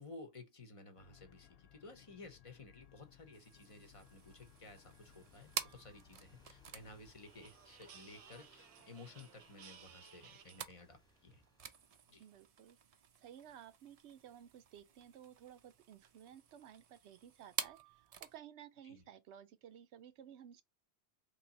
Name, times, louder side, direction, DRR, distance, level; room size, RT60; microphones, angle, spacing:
voice 1, 0.0-11.4 12.1-12.2 18.8-19.0, left 3 dB, 35° left, 0.7 m, -55 dB
sound 1, 1.0-7.1, left 11 dB, 70° left, 0.8 m, -64 dB
sound 2, 2.7-12.6, equal, 5° left, 1.1 m, -70 dB
sound 3, 3.3-18.4, right 7 dB, 55° right, 0.4 m, -50 dB
voice 2, 12.2-12.8 13.2-20.6, right 9 dB, 85° right, 0.9 m, -56 dB
3.1 x 2.8 x 3.9 m
omnidirectional pair, 1.1 m